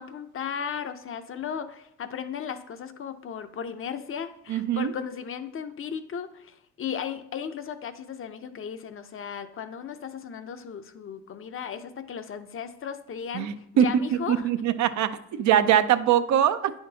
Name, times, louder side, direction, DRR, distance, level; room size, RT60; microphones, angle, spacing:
voice 1, 0.0-14.5 15.3-15.4, left 7 dB, 45° left, 10 dB, 0.6 m, -36 dB
voice 2, 4.5-4.9 13.3-13.9 14.3-15.1 15.4-16.7, right 10 dB, 70° right, 11 dB, 0.5 m, -22 dB
9.4 x 5.8 x 2.8 m, 0.80 s
cardioid pair, 90°, 30 cm